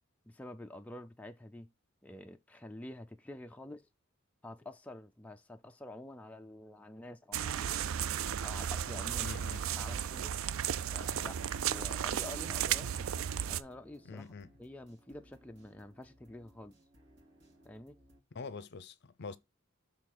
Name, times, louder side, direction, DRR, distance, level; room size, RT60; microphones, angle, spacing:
voice 1, 0.3-1.7 2.0-3.9 4.4-7.8 8.4-9.4 9.8-10.4 10.9-11.4 11.7-13.1 13.5-14.3 14.6-16.8 17.6-18.0, left 1 dB, 5° left, 0.3 m, -48 dB
sound 1, 7.3-13.6, right 9 dB, 75° right, 0.4 m, -34 dB
voice 2, 9.2-9.7 14.0-14.5 18.3-19.4, left 4 dB, 55° left, 0.6 m, -44 dB
sound 2, 10.6-18.2, equal, 55° right, 2.4 m, -63 dB
6.5 x 3.7 x 5.9 m
head